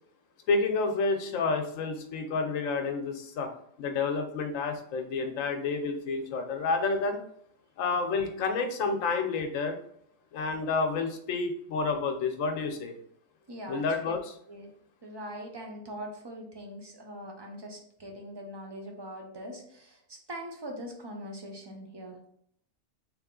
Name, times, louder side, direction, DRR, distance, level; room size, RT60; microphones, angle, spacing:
voice 1, 0.5-3.5 3.8-7.2 7.8-9.8 10.3-12.9 13.7-14.3, left 4 dB, 85° left, 5 dB, 1.0 m, -29 dB
voice 2, 13.5-14.1 14.5-14.7 15.0-22.2, equal, 35° right, 1 dB, 0.4 m, -42 dB
3.4 x 2.9 x 3.7 m, 0.66 s
omnidirectional pair, 1.3 m